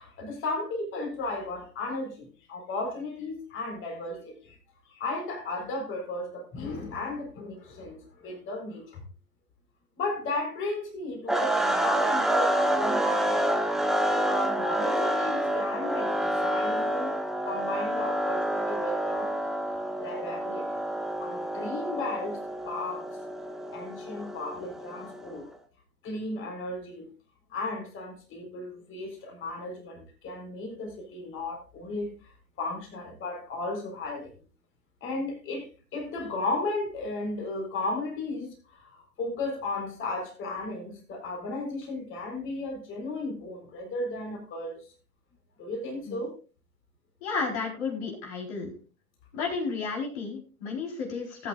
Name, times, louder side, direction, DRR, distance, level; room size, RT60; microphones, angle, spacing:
voice 1, 0.0-4.6 4.9-9.0 10.0-13.4 13.9-17.1 17.4-19.3 19.6-20.8 21.2-22.4 22.6-23.1 23.7-25.5 26.0-27.1 27.5-34.3 35.0-44.8 45.6-46.3, left 2 dB, 25° left, 2 dB, 4.3 m, -35 dB
sound 1, 11.3-25.4, right 1 dB, ahead, 1.1 m, -28 dB
voice 2, 47.2-48.7 49.3-51.5, left 4 dB, 45° left, 1 dB, 4.2 m, -32 dB
19.0 x 9.1 x 2.4 m, 0.34 s
figure-of-eight pair, 105°, 46 cm